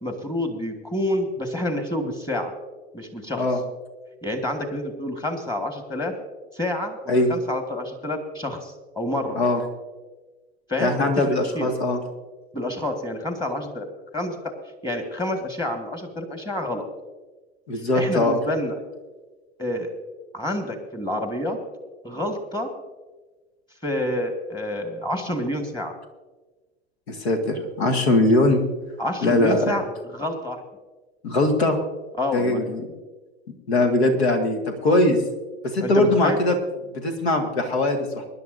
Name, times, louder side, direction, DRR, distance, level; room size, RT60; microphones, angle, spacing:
voice 1, 0.0-2.5 2.9-3.5 4.2-6.1 6.5-9.4 10.7-11.7 12.5-13.9 14.1-14.4 14.8-16.8 17.9-18.8 19.6-19.9 20.3-21.6 22.0-22.7 23.8-25.9 29.0-29.8 30.1-30.6 32.2-32.6 35.8-36.4, left 1 dB, 15° left, 5 dB, 1.8 m, -28 dB
voice 2, 10.8-12.0 17.7-18.4 27.1-28.6 29.2-29.7 31.2-31.8 32.3-32.8 33.7-35.2 35.6-36.6 36.9-38.2, left 2 dB, 75° left, 5 dB, 1.9 m, -21 dB
24.5 x 11.0 x 2.7 m, 1.2 s
figure-of-eight pair, 80°, 32 cm